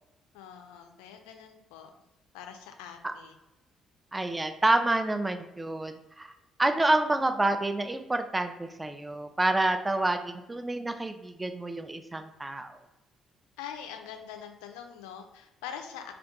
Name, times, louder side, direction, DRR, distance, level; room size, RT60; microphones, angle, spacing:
voice 1, 0.3-1.9 2.3-3.3 13.6-16.1, left 8 dB, 70° left, 5 dB, 0.3 m, -43 dB
voice 2, 4.1-6.3 6.6-12.7, right 2 dB, 15° right, 7 dB, 0.3 m, -28 dB
2.5 x 2.3 x 3.7 m, 0.99 s
figure-of-eight pair, 45°, 0 cm